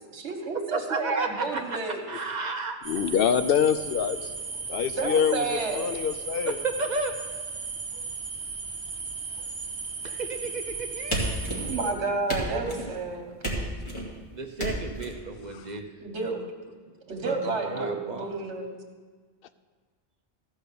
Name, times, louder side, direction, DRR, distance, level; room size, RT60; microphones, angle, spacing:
voice 1, 0.1-2.0 4.9-5.9 11.7-13.3 16.0-16.4 17.1-18.7, right 3 dB, 80° right, 3 dB, 1.7 m, -30 dB
voice 2, 0.7-1.8 2.1-2.8 6.6-7.2 10.0-11.5 14.3-15.9 17.2-17.4 17.6-18.2, right 3 dB, 45° right, 5 dB, 0.8 m, -33 dB
voice 3, 2.8-4.3 4.7-6.6 15.5-15.7, left 8 dB, 65° left, 11 dB, 0.7 m, -25 dB
sound 1, 2.8-11.9, right 4 dB, 60° right, 1.3 m, -36 dB
sound 2, 11.1-11.9 12.3-12.9 13.4-14.1 14.6-15.1, right 1 dB, 25° left, 2.1 m, -31 dB
14.0 x 5.5 x 6.8 m, 1.5 s
omnidirectional pair, 1.1 m